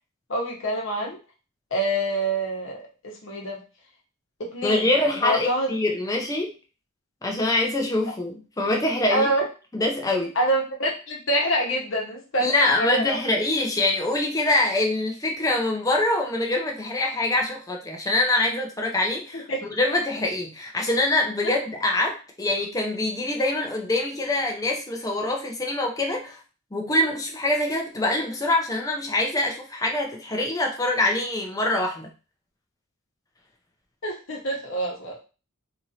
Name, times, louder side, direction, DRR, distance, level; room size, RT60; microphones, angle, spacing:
voice 1, 0.3-1.2 1.7-3.6 4.5-4.9 5.1-5.7 9.1-9.4 10.3-13.2 19.5-19.6 34.0-35.2, right 1 dB, 65° left, -1 dB, 0.9 m, -26 dB
voice 2, 4.6-6.6 7.2-9.3 9.7-10.3 12.4-26.4 26.7-32.1, left 2 dB, 15° left, 1 dB, 0.5 m, -24 dB
3.0 x 2.6 x 2.7 m, 0.34 s
head